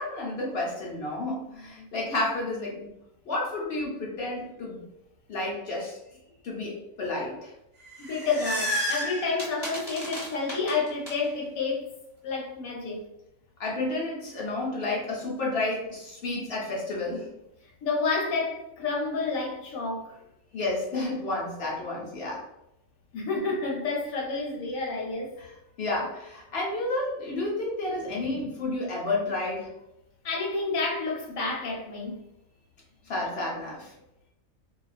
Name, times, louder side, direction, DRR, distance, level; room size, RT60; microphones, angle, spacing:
voice 1, 0.0-2.9 3.3-4.8 5.3-6.0 6.4-7.5 13.6-17.3 20.5-22.4 25.4-29.7 33.1-33.9, left 2 dB, 55° left, 0.8 m, -31 dB
sound 1, 7.8-11.1, equal, 20° left, 1.0 m, -32 dB
voice 2, 8.0-11.9 12.2-13.1 17.8-20.1 23.1-25.3 28.1-28.5 30.2-32.2, left 4 dB, 90° left, 1.1 m, -30 dB
2.3 x 2.3 x 2.3 m
omnidirectional pair, 1.4 m